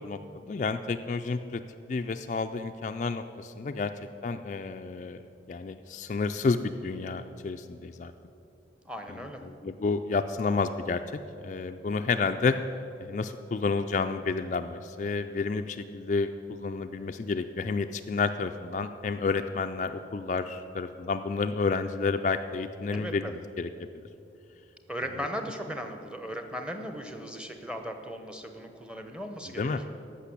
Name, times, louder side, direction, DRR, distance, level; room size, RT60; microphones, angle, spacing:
voice 1, 0.0-1.6 1.9-3.9 4.2-5.2 5.5-8.1 9.1-9.2 9.4-11.0 11.4-12.6 13.0-23.7 29.6-29.8, left 4 dB, 40° left, 7 dB, 0.3 m, -30 dB
voice 2, 8.8-9.4 22.9-23.3 24.9-29.8, equal, 5° right, 6 dB, 0.8 m, -37 dB
14.0 x 6.0 x 8.5 m, 2.8 s
head